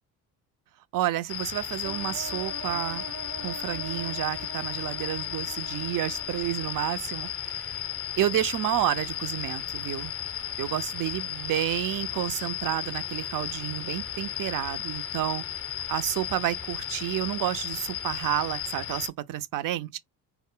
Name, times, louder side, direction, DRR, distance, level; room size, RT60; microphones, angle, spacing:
voice 1, 0.9-3.0 3.4-7.8 8.2-10.1 10.6-15.4 15.7-20.0, right 13 dB, 55° right, 0.5 m, -30 dB
sound 1, 1.3-19.1, left 11 dB, 35° left, 0.6 m, -34 dB
sound 2, 1.8-6.7, right 4 dB, 70° right, 0.9 m, -43 dB
2.1 x 2.0 x 3.6 m
cardioid pair, 85°, 39 cm